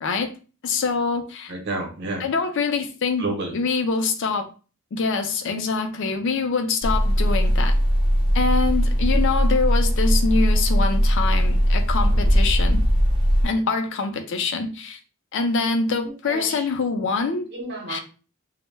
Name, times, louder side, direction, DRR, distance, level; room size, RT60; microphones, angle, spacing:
voice 1, 0.0-0.3 0.6-1.5 2.2-3.3 3.5-4.5 4.9-7.7 8.3-12.8 13.4-15.0 15.3-17.5 17.9-18.0, left 4 dB, 60° left, 6 dB, 0.4 m, -25 dB
voice 2, 1.5-2.3 3.2-3.5 16.0-16.7 17.5-18.0, right 2 dB, 55° right, 2 dB, 0.7 m, -30 dB
sound 1, 6.8-13.5, equal, 25° right, 0.5 m, -19 dB
2.1 x 2.0 x 3.2 m, 0.35 s
head